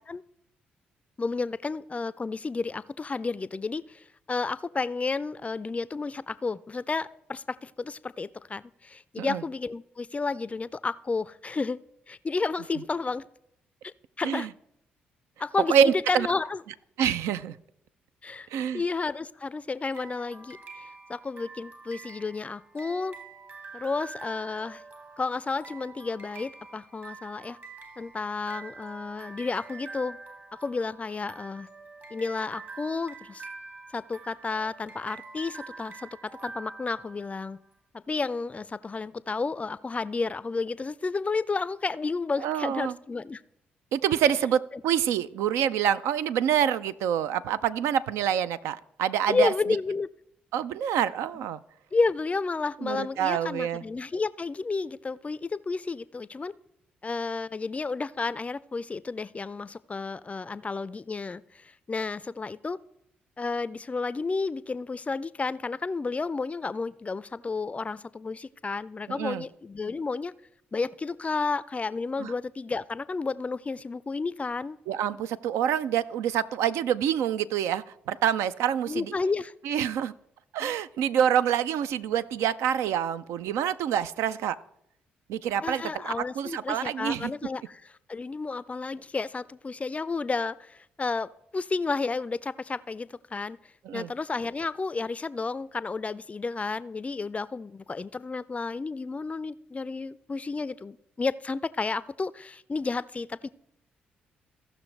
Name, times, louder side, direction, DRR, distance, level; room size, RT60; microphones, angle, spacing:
voice 1, 1.2-11.8 12.1-13.2 13.8-14.5 15.4-16.6 18.2-18.5 18.7-20.6 21.1-23.2 23.7-24.8 25.2-27.6 28.0-30.2 30.6-31.7 32.1-33.5 33.9-37.6 37.9-43.4 44.7-44.8 49.3-50.1 51.9-56.5 57.0-62.8 63.4-70.3 70.7-74.8 78.9-79.5 85.6-93.6 93.9-103.5, left 4 dB, 25° left, 18 dB, 0.4 m, -31 dB
voice 2, 15.7-16.3 17.0-17.6 18.5-18.8 42.4-42.9 43.9-49.5 50.5-51.6 52.8-53.8 69.1-69.4 72.2-72.3 74.9-79.1 79.6-80.1 80.5-84.6 85.3-87.3 93.9-94.1, right 9 dB, 65° right, 14 dB, 0.4 m, -26 dB
sound 1, 19.9-37.6, right 4 dB, 40° right, 1.9 m, -46 dB
16.0 x 6.2 x 3.2 m, 0.78 s
figure-of-eight pair, 40°, 5 cm